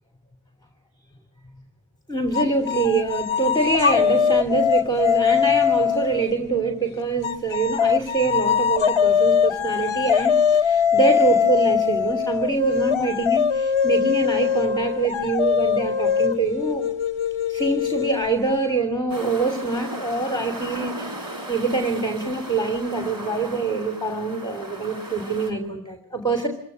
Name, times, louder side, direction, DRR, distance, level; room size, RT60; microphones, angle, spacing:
voice 1, 2.1-16.9 17.5-26.5, right 3 dB, 10° left, 6 dB, 3.0 m, -25 dB
sound 1, 2.3-6.3 7.2-18.5, left 7 dB, 70° left, 0.8 m, -21 dB
sound 2, 19.1-25.5, right 1 dB, 40° right, 4.1 m, -36 dB
26.5 x 15.5 x 9.5 m, 0.73 s
wide cardioid pair, 70°, 49 cm